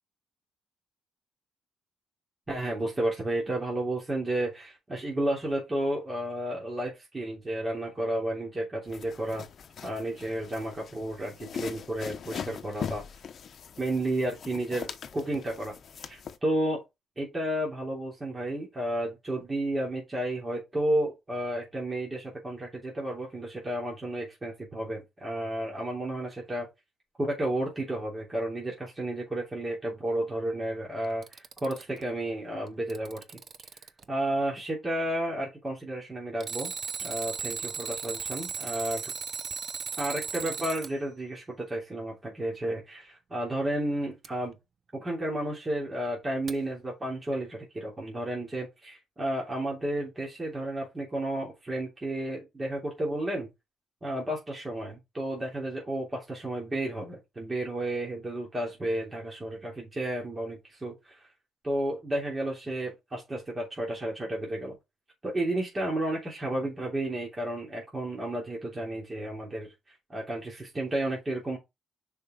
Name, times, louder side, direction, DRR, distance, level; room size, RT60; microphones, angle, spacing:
voice 1, 2.5-9.4 9.8-13.0 13.8-15.7 16.0-16.8 17.2-26.7 27.2-33.2 34.1-36.7 37.0-39.1 40.0-44.6 44.9-53.5 54.0-61.3 61.6-64.8 65.2-69.7 70.1-71.6, right 1 dB, 25° right, 3.0 m, -32 dB
sound 1, 8.9-16.4, left 7 dB, 55° left, 0.9 m, -41 dB
Alarm, 31.0-32.0 32.7-34.0 36.4-40.9 44.2-44.3 46.5-46.6, right 6 dB, 45° right, 0.7 m, -36 dB
6.5 x 5.1 x 3.8 m
cardioid pair, 90°, 0 cm